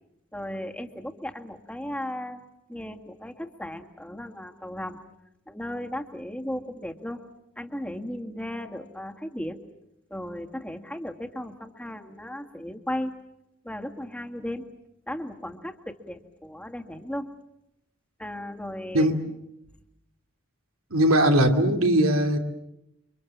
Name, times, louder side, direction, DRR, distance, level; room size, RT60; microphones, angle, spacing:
voice 1, 0.3-2.4 2.7-5.0 5.5-7.2 7.6-9.7 10.1-13.1 13.6-14.7 15.1-17.3 18.2-19.1, left 1 dB, 5° left, 5 dB, 1.9 m, -35 dB
voice 2, 20.9-22.4, right 1 dB, 85° right, 5 dB, 3.0 m, -20 dB
30.0 x 25.0 x 7.3 m, 0.84 s
head